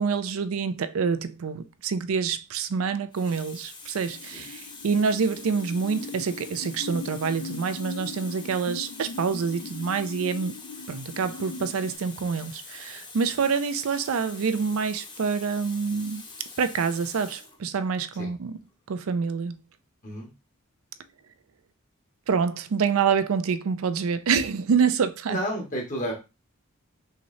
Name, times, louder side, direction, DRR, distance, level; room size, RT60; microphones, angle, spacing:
voice 1, 0.0-10.5 10.9-16.2 16.6-18.5 18.9-19.6 22.3-25.4, right 5 dB, 85° right, 0.4 m, -26 dB
Water tap faucet, 2.3-2.5 3.1-17.6 18.5-18.7, left 4 dB, 20° left, 0.7 m, -45 dB
sound 1, 3.8-12.0, left 4 dB, 75° left, 0.4 m, -40 dB
voice 2, 25.3-26.1, equal, 40° left, 1.6 m, -31 dB
5.6 x 3.1 x 2.7 m
head